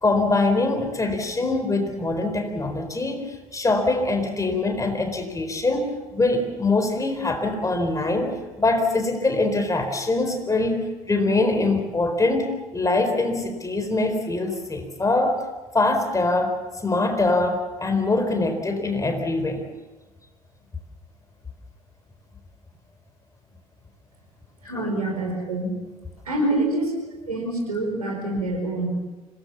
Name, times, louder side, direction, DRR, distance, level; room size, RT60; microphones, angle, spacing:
voice 1, 0.0-10.8 11.1-15.4 15.7-19.7 24.6-24.9 26.5-26.6, left 2 dB, 15° left, 6 dB, 4.3 m, -23 dB
voice 2, 24.7-25.7 26.3-26.9 27.3-28.9, right 2 dB, 80° right, 2 dB, 4.8 m, -26 dB
26.5 x 19.0 x 7.2 m, 1.1 s
figure-of-eight pair, 65°, 19 cm